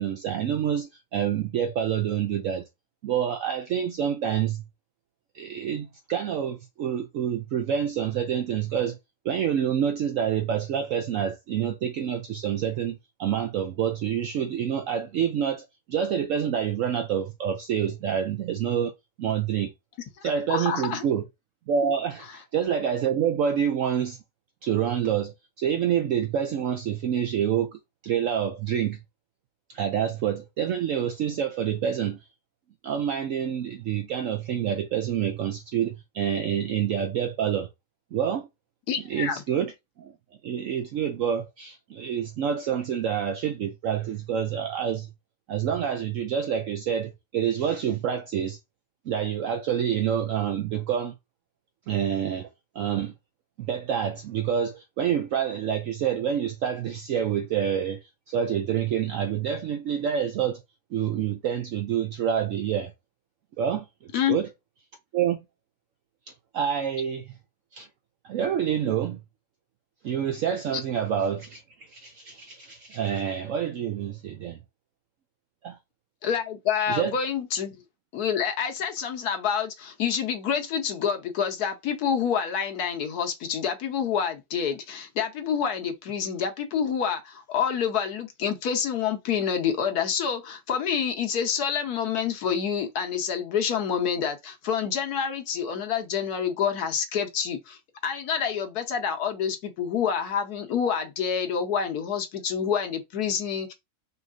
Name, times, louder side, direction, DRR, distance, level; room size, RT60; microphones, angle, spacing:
voice 1, 0.0-2.7 3.0-4.6 5.3-9.0 9.2-18.9 19.2-19.7 20.2-21.2 21.7-24.2 24.6-29.0 29.7-32.2 32.8-37.7 38.1-38.5 39.0-40.1 40.4-45.1 45.5-48.6 49.1-51.1 51.9-52.5 52.7-53.1 53.6-58.0 58.3-60.6 60.9-62.9 63.6-64.5 65.1-65.4 66.3-67.3 67.7-67.9 68.2-69.2 70.0-74.6 75.6-75.8 76.9-77.1, right 8 dB, 70° right, 0.7 m, -27 dB
voice 2, 20.2-21.0 22.2-22.4 38.9-39.4 64.1-64.4 70.7-70.8 76.2-77.7 78.1-103.7, left 7 dB, 70° left, 1.3 m, -28 dB
5.3 x 3.1 x 2.5 m
omnidirectional pair, 1.8 m